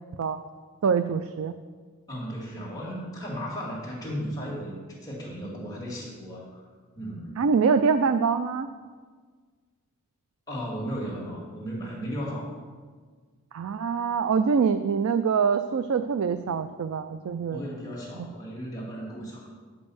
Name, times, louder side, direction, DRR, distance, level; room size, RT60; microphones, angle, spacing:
voice 1, 0.8-1.6 7.4-8.7 13.5-17.6 18.2-18.3, right 5 dB, 65° right, 10 dB, 0.4 m, -24 dB
voice 2, 2.1-6.6 7.0-7.4 10.5-12.5 17.5-19.5, equal, 15° left, -4 dB, 2.1 m, -35 dB
10.5 x 5.3 x 7.0 m, 1.5 s
head